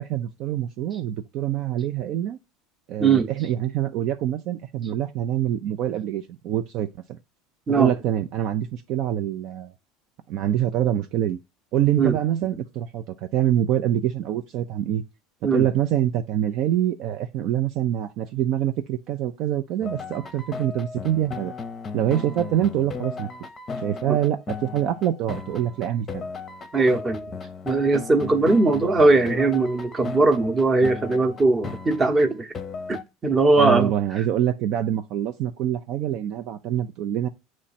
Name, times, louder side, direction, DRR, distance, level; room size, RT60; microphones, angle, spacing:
voice 1, 0.0-2.4 2.9-7.2 7.7-9.7 10.3-11.4 11.7-15.0 15.4-21.5 21.9-23.3 23.8-26.2 33.6-37.3, right 11 dB, 45° right, 0.5 m, -25 dB
sound 1, 19.8-33.0, left 5 dB, 20° left, 0.8 m, -36 dB
voice 2, 26.7-27.3 27.6-32.5 32.9-33.9, right 3 dB, 20° right, 0.9 m, -20 dB
8.6 x 3.1 x 4.2 m
supercardioid pair, 155°, 0 cm